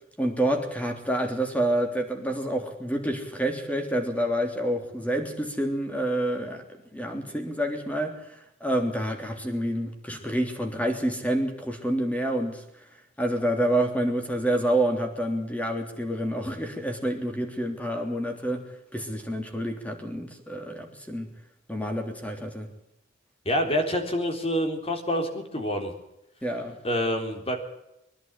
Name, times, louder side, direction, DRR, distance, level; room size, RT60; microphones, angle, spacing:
voice 1, 0.2-6.6 6.9-12.6 13.2-18.6 18.9-21.3 21.7-22.7 26.4-26.8, right 1 dB, 10° left, 4 dB, 3.4 m, -28 dB
voice 2, 23.5-25.9 26.8-27.6, equal, 30° left, 4 dB, 3.8 m, -27 dB
23.5 x 11.0 x 9.9 m, 0.87 s
head